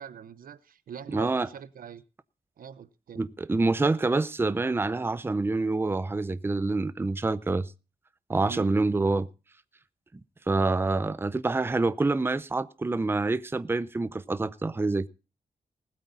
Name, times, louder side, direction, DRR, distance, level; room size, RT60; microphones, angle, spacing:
voice 1, 0.0-2.0 2.6-3.3 8.4-8.8, right 8 dB, 85° right, 0.9 m, -43 dB
voice 2, 1.1-1.5 3.2-7.7 8.3-9.3 10.5-15.1, right 3 dB, 15° right, 0.6 m, -26 dB
19.5 x 8.5 x 4.0 m
wide cardioid pair, 120°, 14 cm